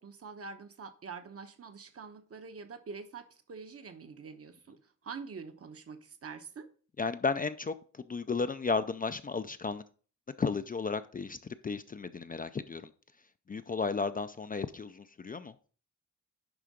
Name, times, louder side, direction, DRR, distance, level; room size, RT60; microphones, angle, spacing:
voice 1, 0.0-6.7, right 5 dB, 50° right, 0.9 m, -45 dB
voice 2, 7.0-9.8 10.4-11.4 11.6-12.8 13.5-15.5, left 4 dB, 30° left, 0.4 m, -33 dB
11.0 x 3.8 x 5.1 m
wide cardioid pair, 130°, 31 cm